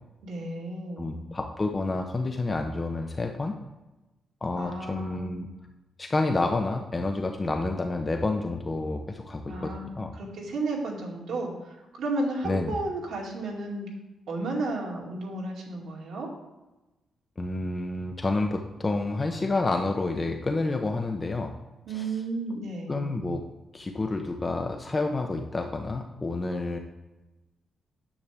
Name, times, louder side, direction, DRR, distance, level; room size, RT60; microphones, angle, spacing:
voice 1, 0.2-1.2 4.6-5.4 9.5-13.9 14.3-16.3 21.9-23.2, right 2 dB, 85° right, -2 dB, 2.2 m, -33 dB
voice 2, 1.0-3.5 4.4-5.5 6.0-10.1 12.4-12.8 17.4-21.5 21.9-22.1 22.9-23.4 23.7-26.8, left 2 dB, 20° left, 3 dB, 0.6 m, -29 dB
9.6 x 7.1 x 3.4 m, 1.0 s
wide cardioid pair, 175°, 0 cm